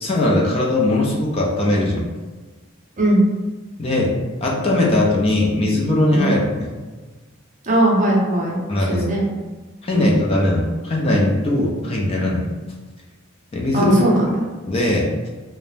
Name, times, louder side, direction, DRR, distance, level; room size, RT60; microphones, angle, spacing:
voice 1, 0.0-2.1 3.8-4.1 4.4-6.7 8.7-9.1 9.8-12.5 13.5-14.0 14.7-15.1, left 1 dB, 30° left, -2 dB, 0.4 m, -19 dB
voice 2, 7.6-8.6 8.9-9.3 9.9-10.1 13.7-14.4, right 1 dB, 35° right, -3 dB, 0.6 m, -18 dB
2.5 x 2.1 x 3.2 m, 1.3 s
head